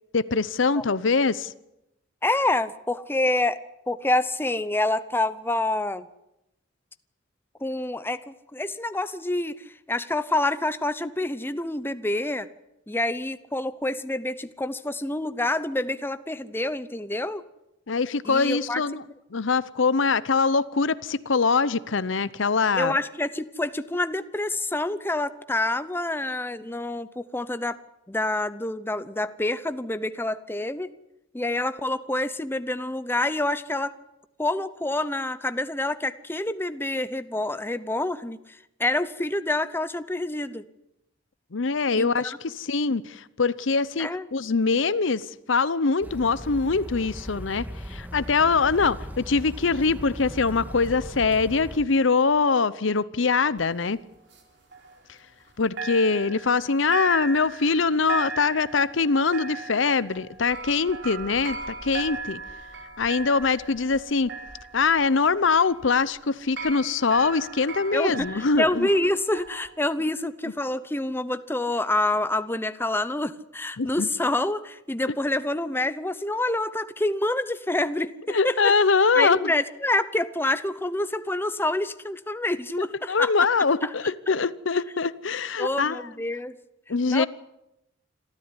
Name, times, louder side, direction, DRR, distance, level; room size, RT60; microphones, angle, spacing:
voice 1, 0.1-1.5 17.9-19.0 19.3-22.9 41.5-54.0 55.6-62.4 63.0-64.3 64.7-68.9 73.8-74.1 78.3-79.5 82.8-86.1 86.9-87.3, left 4 dB, 75° left, 17 dB, 0.8 m, -23 dB
voice 2, 2.2-3.6 3.9-6.1 7.6-12.5 12.9-17.4 18.3-18.8 22.8-27.8 28.1-30.9 31.3-33.9 34.4-38.4 38.8-40.6 41.9-42.4 44.0-44.3 67.9-78.7 79.1-83.3 83.8-83.9 85.6-86.6 87.1-87.3, left 2 dB, 10° left, 13 dB, 0.7 m, -27 dB
sound 1, 46.0-51.8, equal, 10° right, 1.7 m, -38 dB
sound 2, 53.6-55.5 55.8-69.7, right 3 dB, 60° right, 3.8 m, -38 dB
26.5 x 13.5 x 9.8 m, 0.87 s
head